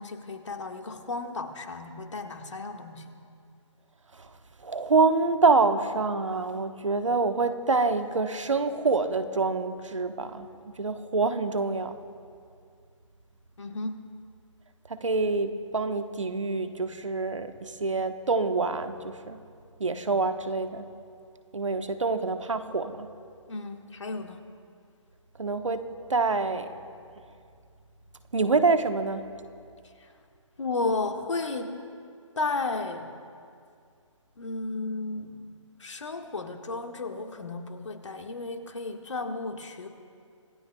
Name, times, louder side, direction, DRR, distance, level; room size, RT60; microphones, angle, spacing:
voice 1, 0.0-3.0 13.6-14.1 23.5-24.4 30.0-30.1 30.6-31.8 32.3-33.1 34.4-35.5 35.8-39.9, left 3 dB, 65° left, 4 dB, 1.7 m, -33 dB
voice 2, 4.6-10.5 10.8-11.9 14.9-19.4 19.8-20.9 21.5-23.1 25.4-25.8 26.1-26.7 28.3-29.3, right 3 dB, 70° right, 8 dB, 1.2 m, -26 dB
25.5 x 18.5 x 2.3 m, 2.3 s
figure-of-eight pair, 140°, 17 cm